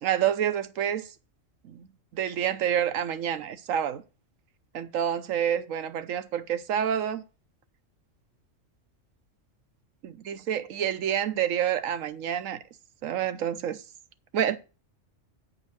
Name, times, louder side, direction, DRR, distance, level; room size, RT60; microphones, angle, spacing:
voice 1, 0.0-1.1 1.7-1.8 2.1-4.0 4.7-7.2 10.0-12.6 13.0-13.8 14.3-14.6, right 9 dB, 85° right, 1.1 m, -28 dB
9.6 x 5.4 x 5.8 m
omnidirectional pair, 1.3 m